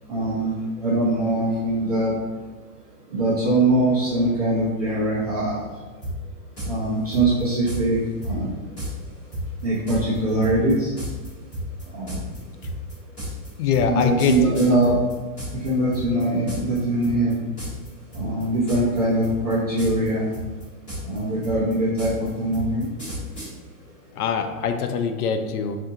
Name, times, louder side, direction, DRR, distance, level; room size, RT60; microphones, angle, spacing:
voice 1, 0.1-0.5 0.8-2.1 3.1-5.6 6.6-8.5 9.6-10.9 11.9-12.2 13.8-15.0 15.6-17.3 18.1-20.3 21.0-22.9, right 2 dB, 25° right, -10 dB, 0.5 m, -22 dB
sound 1, 6.0-6.1 6.6-6.7 7.1-7.8 8.2-8.3 8.8-8.9 9.3-15.7 15.9-16.8 17.0-17.3 17.6-17.9 18.1-19.0 19.2-20.1 20.3-23.5, right 1 dB, 15° left, 1.4 m, -32 dB
voice 2, 13.6-14.8 24.1-25.8, left 6 dB, 70° left, 7 dB, 0.5 m, -24 dB
4.7 x 2.6 x 2.7 m, 1.3 s
hypercardioid pair, 175°, 47 cm